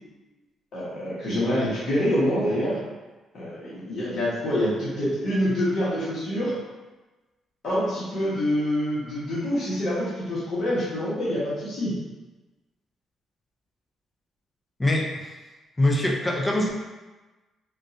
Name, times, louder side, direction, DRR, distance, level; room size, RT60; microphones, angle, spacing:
voice 1, 0.7-2.8 3.3-6.6 7.6-11.9, equal, 55° left, -9 dB, 1.2 m, -26 dB
voice 2, 14.8-15.3 15.8-16.7, left 1 dB, 20° left, 0 dB, 0.6 m, -23 dB
3.6 x 2.4 x 2.7 m, 1.2 s
cardioid pair, 90°, 0 cm